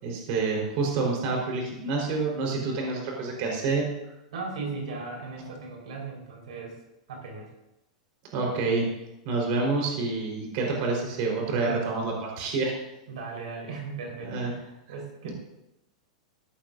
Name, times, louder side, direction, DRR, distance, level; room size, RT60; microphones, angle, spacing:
voice 1, 0.0-3.9 8.3-8.9 9.2-12.7 14.2-14.5, right 3 dB, 55° right, -1 dB, 4.4 m, -28 dB
voice 2, 4.3-6.8 7.1-7.5 13.1-14.5 14.9-15.3, right 4 dB, 80° right, -1 dB, 4.6 m, -37 dB
16.5 x 14.0 x 2.7 m, 0.89 s
hypercardioid pair, 130°, 4 cm